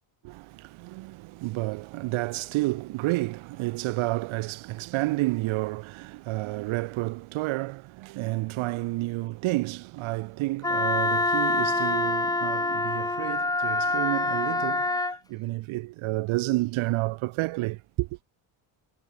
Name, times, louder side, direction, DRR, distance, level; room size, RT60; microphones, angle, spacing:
voice 1, 0.2-18.2, right 20 dB, 80° right, 1.6 m, -30 dB
Wind instrument woodwind instrument, 10.6-15.2, left 2 dB, 10° left, 1.1 m, -26 dB
cardioid pair, 135°, 48 cm